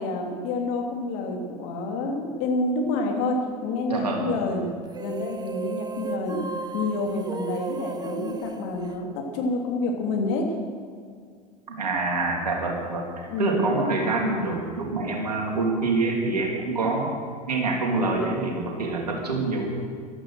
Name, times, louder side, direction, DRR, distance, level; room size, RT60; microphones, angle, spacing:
voice 1, 0.0-4.7 5.0-6.5 6.7-9.1 9.3-10.5 13.3-13.7 14.2-14.5, left 2 dB, 60° left, 2 dB, 2.9 m, -28 dB
voice 2, 3.9-4.3 11.7-17.1 17.5-19.7, right 3 dB, 80° right, 0 dB, 3.1 m, -26 dB
sound 1, 4.9-9.6, right 5 dB, 20° right, 0.9 m, -35 dB
14.0 x 13.0 x 6.3 m, 2.1 s
figure-of-eight pair, 75°, 20 cm